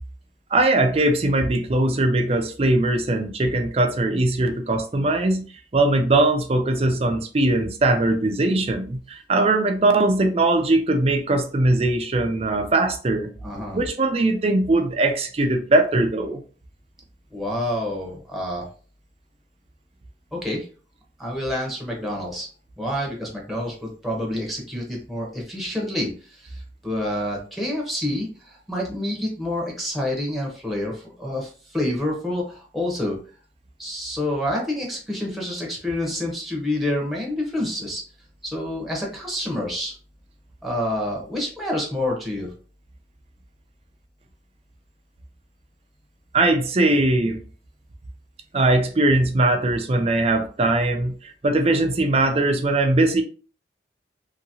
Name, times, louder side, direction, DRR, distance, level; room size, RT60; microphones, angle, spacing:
voice 1, 0.5-5.4 5.7-13.3 13.7-16.4 46.3-47.4 48.5-53.2, right 2 dB, 35° right, 0.4 m, -20 dB
voice 2, 13.4-13.8 17.3-18.7 20.3-20.7 21.2-22.5 22.8-33.2 33.8-38.0 38.4-39.9 40.6-42.5, left 1 dB, ahead, 0.9 m, -28 dB
2.8 x 2.8 x 2.7 m
head